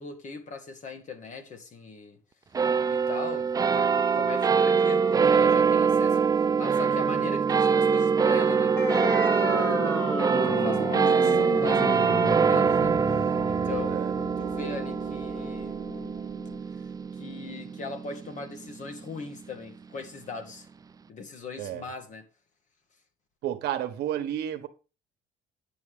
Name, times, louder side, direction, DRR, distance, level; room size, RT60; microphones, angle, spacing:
voice 1, 0.0-2.2 2.9-8.7 9.2-15.8 17.2-20.7 21.1-22.3, left 4 dB, 45° left, 1.8 m, -40 dB
sound 1, 2.5-19.3, right 6 dB, 20° right, 0.4 m, -24 dB
sound 2, 8.8-15.8, left 1 dB, 15° left, 2.2 m, -32 dB
Wind instrument woodwind instrument, 11.0-16.6, left 5 dB, 65° left, 1.3 m, -45 dB
voice 2, 23.4-24.7, right 11 dB, 75° right, 1.3 m, -31 dB
9.2 x 6.3 x 3.7 m
cardioid pair, 110°, 17 cm